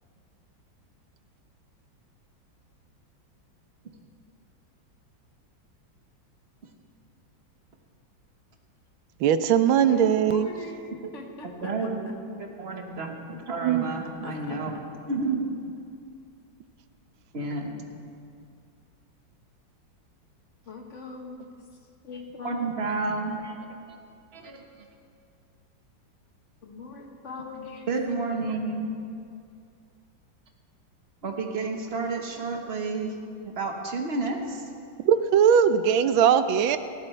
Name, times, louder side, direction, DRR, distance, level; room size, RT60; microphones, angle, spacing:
voice 1, 9.2-10.5 13.6-13.9 35.0-36.8, right 8 dB, 85° right, 12 dB, 1.4 m, -20 dB
voice 2, 9.8-10.8 11.1-11.9 13.6-13.7 14.2-14.6 20.7-21.5 22.0-22.7 26.6-27.9, left 3 dB, 40° left, 2 dB, 1.5 m, -40 dB
voice 3, 11.4-14.8 15.1-15.7 17.3-17.8 22.4-23.6 23.9-24.0 24.3-24.6 27.9-28.9 31.2-34.7, right 3 dB, 35° right, 2 dB, 1.2 m, -31 dB
19.0 x 14.5 x 3.2 m, 2.4 s
omnidirectional pair, 2.1 m